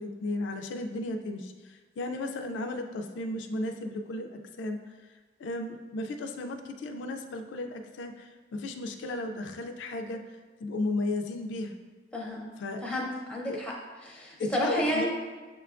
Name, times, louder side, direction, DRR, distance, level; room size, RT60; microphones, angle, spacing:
voice 1, 0.0-4.8 5.4-10.2 10.6-11.7 12.6-12.8 13.5-13.6 14.4-15.1, left 2 dB, 85° left, 4 dB, 0.3 m, -34 dB
voice 2, 12.1-12.5 12.8-13.7 14.0-15.1, left 1 dB, 5° left, -3 dB, 0.5 m, -31 dB
6.6 x 2.2 x 2.4 m, 1.3 s
head